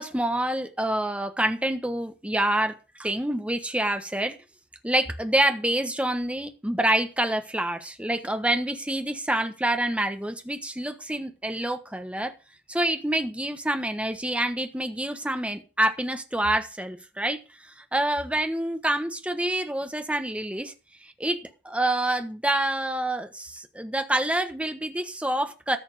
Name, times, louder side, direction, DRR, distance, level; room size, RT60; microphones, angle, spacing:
voice 1, 0.0-4.4 4.8-12.3 12.7-20.7 21.0-25.8, right 1 dB, 5° right, 8 dB, 1.3 m, -27 dB
14.0 x 5.8 x 7.6 m, 0.33 s
head